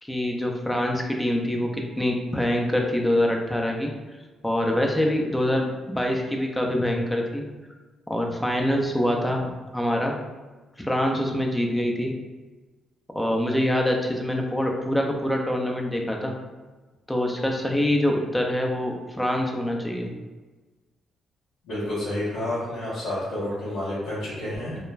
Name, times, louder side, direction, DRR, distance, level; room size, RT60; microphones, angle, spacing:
voice 1, 0.0-3.9 4.4-7.4 8.1-10.1 10.8-12.1 13.1-16.3 17.1-20.1, left 1 dB, 10° left, 1 dB, 0.5 m, -25 dB
voice 2, 21.6-24.8, left 1 dB, 90° left, -14 dB, 0.9 m, -29 dB
2.4 x 2.1 x 3.1 m, 1.3 s
supercardioid pair, 55°, 0 cm